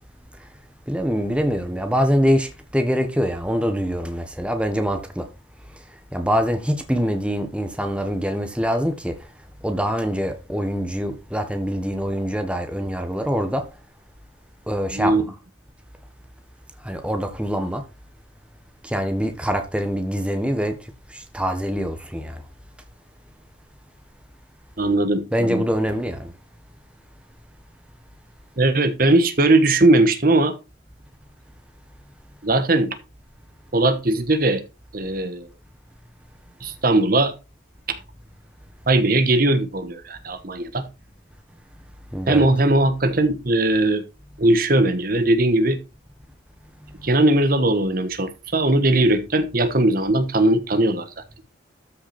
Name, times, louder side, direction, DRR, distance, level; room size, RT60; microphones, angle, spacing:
voice 1, 0.9-5.3 6.1-9.2 9.6-13.6 14.7-15.2 16.8-17.8 18.8-20.8 21.1-22.4 25.3-26.3 42.1-42.5, equal, 5° right, 1.3 m, -24 dB
voice 2, 14.9-15.2 24.8-25.7 28.6-30.5 32.4-32.9 33.7-34.6 34.9-35.5 36.6-37.3 37.9-38.0 38.9-40.8 42.3-44.0 44.4-45.8 47.0-51.1, right 2 dB, 50° right, 1.2 m, -19 dB
13.0 x 5.9 x 4.3 m
head